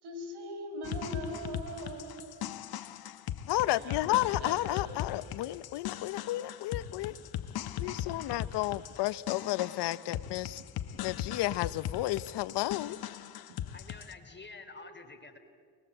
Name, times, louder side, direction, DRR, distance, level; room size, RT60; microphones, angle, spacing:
voice 1, 0.0-2.6 3.7-4.9, right 1 dB, 70° right, 6 dB, 5.0 m, -41 dB
sound 1, 0.8-14.1, left 11 dB, 60° left, 1.3 m, -39 dB
voice 2, 3.5-7.2 7.8-10.6 11.0-13.0, left 16 dB, 80° left, 16 dB, 0.9 m, -32 dB
voice 3, 13.7-15.4, left 3 dB, 25° left, 7 dB, 3.2 m, -48 dB
29.0 x 21.0 x 7.9 m, 2.1 s
cardioid pair, 80°, 40 cm